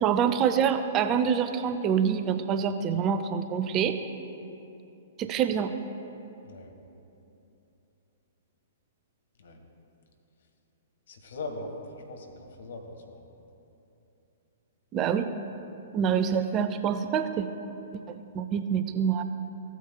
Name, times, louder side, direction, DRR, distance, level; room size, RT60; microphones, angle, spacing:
voice 1, 0.0-4.0 5.2-5.7 14.9-15.3 15.9-17.5 18.1-19.2, right 7 dB, 25° right, 9 dB, 0.4 m, -26 dB
voice 2, 6.4-6.7 9.4-9.6 11.1-13.3, left 2 dB, 60° left, 3 dB, 1.3 m, -40 dB
15.5 x 8.9 x 2.2 m, 2.9 s
figure-of-eight pair, 115°, 0 cm